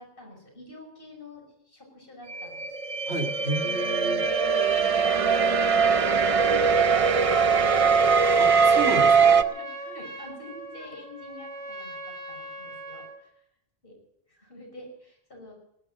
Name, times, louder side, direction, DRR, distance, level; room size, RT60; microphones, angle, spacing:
voice 1, 0.0-2.7 4.9-5.6 5.9-8.0 9.4-13.4 13.8-14.0 14.3-15.5, left 2 dB, 55° left, 1 dB, 5.8 m, -46 dB
sound 1, 2.3-9.4, right 5 dB, 40° right, 0.7 m, -21 dB
voice 2, 3.1-4.3 8.4-9.3, right 2 dB, 85° right, 2 dB, 3.0 m, -32 dB
Trumpet, 7.7-13.2, right 2 dB, 60° right, 3.0 m, -39 dB
19.5 x 11.5 x 6.3 m, 0.76 s
omnidirectional pair, 1.1 m